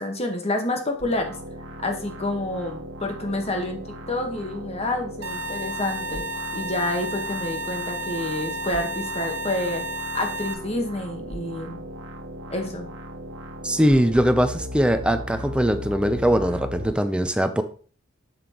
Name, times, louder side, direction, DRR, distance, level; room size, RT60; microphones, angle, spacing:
voice 1, 0.0-1.4 1.8-3.8 4.1-6.2 6.5-11.8 12.5-12.9, left 1 dB, 35° left, 3 dB, 1.4 m, -28 dB
sound 1, 1.0-16.9, equal, 65° right, 1.3 m, -37 dB
sound 2, 5.2-10.5, right 1 dB, 85° right, 0.9 m, -32 dB
voice 2, 13.6-17.6, equal, 5° right, 8 dB, 0.6 m, -21 dB
7.4 x 7.0 x 3.0 m, 0.41 s
head